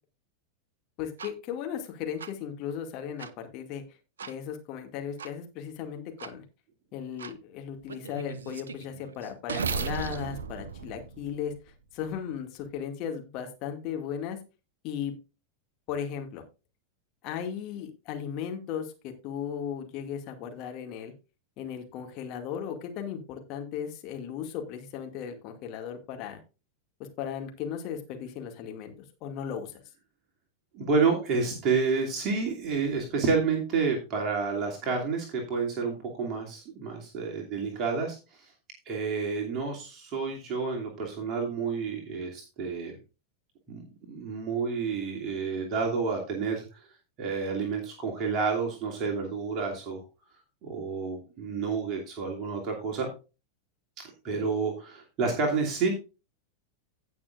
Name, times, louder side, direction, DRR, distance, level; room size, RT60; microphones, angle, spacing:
voice 1, 1.0-3.8 4.2-6.4 6.9-14.4 14.8-15.1 15.9-16.4 17.2-21.1 21.6-26.4 27.0-28.9 29.2-29.8 54.3-54.4, left 8 dB, 40° left, 4 dB, 2.2 m, -36 dB
sound 1, 1.2-1.3 2.2-2.3 3.2-3.3 4.2-4.3 5.2-5.3 6.2-6.3 7.2-7.3 7.9-11.8, right 5 dB, 70° right, 0.7 m, -36 dB
voice 2, 30.7-38.5 38.9-42.9 43.7-43.8 44.1-46.9 47.2-50.0 50.6-53.1 54.2-55.9, right 5 dB, 35° right, 0 dB, 2.7 m, -29 dB
17.0 x 6.1 x 2.5 m, 0.30 s
figure-of-eight pair, 90°, 0 cm